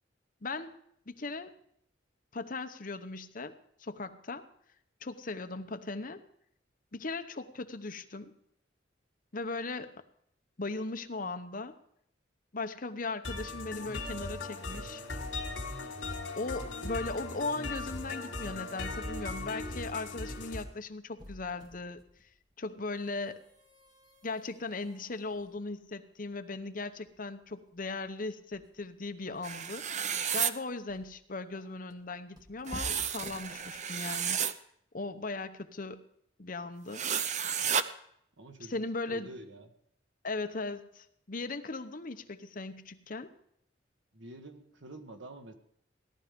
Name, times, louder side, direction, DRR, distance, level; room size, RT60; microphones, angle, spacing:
voice 1, 0.4-0.7 1.1-1.5 2.3-4.5 5.0-6.2 6.9-8.3 9.3-9.9 10.6-11.8 12.5-15.0 16.4-22.3 22.6-23.4 24.2-34.4 34.9-36.0 36.4-37.0 38.7-39.3 40.2-43.3, left 3 dB, 45° left, 9 dB, 0.9 m, -38 dB
sound 1, 13.2-20.6, left 2 dB, 70° left, 2.8 m, -38 dB
sound 2, 21.0-34.2, equal, 20° right, 2.0 m, -53 dB
sound 3, 29.4-30.5 32.7-34.5 36.9-37.8, right 8 dB, 40° right, 0.7 m, -32 dB
voice 2, 38.4-39.7 44.1-45.5, right 1 dB, 75° right, 6 dB, 1.7 m, -48 dB
17.5 x 12.0 x 5.2 m, 0.70 s
head